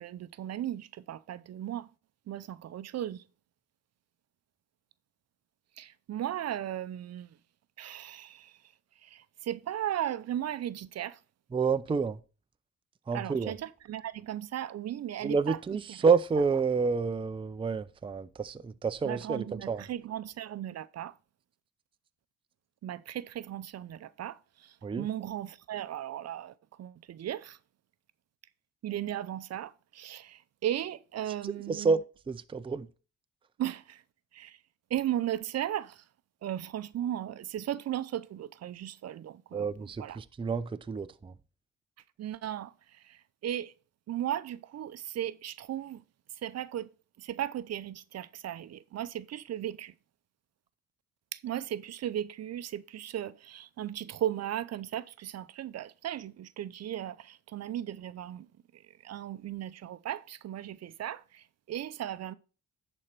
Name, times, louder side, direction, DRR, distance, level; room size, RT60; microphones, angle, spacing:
voice 1, 0.0-1.9 2.3-3.2 5.8-7.4 7.8-11.2 13.1-15.6 15.9-16.0 19.0-21.2 22.8-27.6 28.8-31.9 33.6-34.0 34.3-34.6 34.9-36.1 36.4-40.2 42.2-43.7 44.1-46.0 46.3-46.9 47.2-49.9 51.3-62.3, right 11 dB, 55° right, 0.6 m, -36 dB
voice 2, 11.5-12.2 13.1-13.5 15.2-19.8 24.8-25.1 31.7-32.9 39.5-41.3, right 5 dB, 15° right, 0.5 m, -29 dB
11.0 x 4.4 x 5.9 m
cardioid pair, 90°, 30 cm